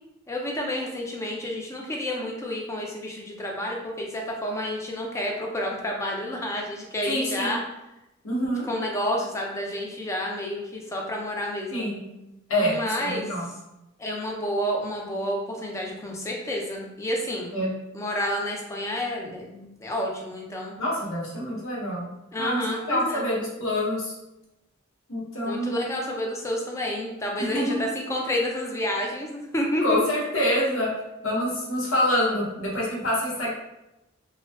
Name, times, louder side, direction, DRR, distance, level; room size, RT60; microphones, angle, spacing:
voice 1, 0.3-7.6 8.4-11.9 12.6-13.3 14.0-17.5 17.9-20.7 22.3-23.3 25.4-30.0, left 1 dB, 15° left, 0 dB, 0.3 m, -30 dB
voice 2, 7.0-7.6 8.2-8.7 11.7-12.0 12.5-13.5 17.5-17.7 20.8-22.1 22.4-22.6 22.9-24.1 25.1-25.8 27.4-27.8 29.8-30.9 31.2-33.5, left 1 dB, 80° left, -5 dB, 0.8 m, -26 dB
2.5 x 2.2 x 2.3 m, 0.92 s
head